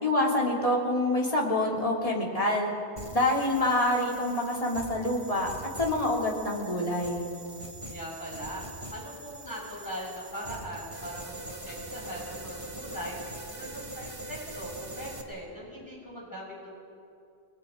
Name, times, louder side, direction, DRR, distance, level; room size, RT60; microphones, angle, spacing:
voice 1, 0.0-2.7 3.1-5.5 5.8-7.3, left 1 dB, 35° left, -2 dB, 3.2 m, -26 dB
sound 1, 3.0-15.2, right 2 dB, 30° right, 1.7 m, -43 dB
voice 2, 7.8-8.6 8.9-13.2 13.5-16.7, equal, 20° left, -4 dB, 6.3 m, -40 dB
28.5 x 20.5 x 5.1 m, 2.5 s
omnidirectional pair, 1.0 m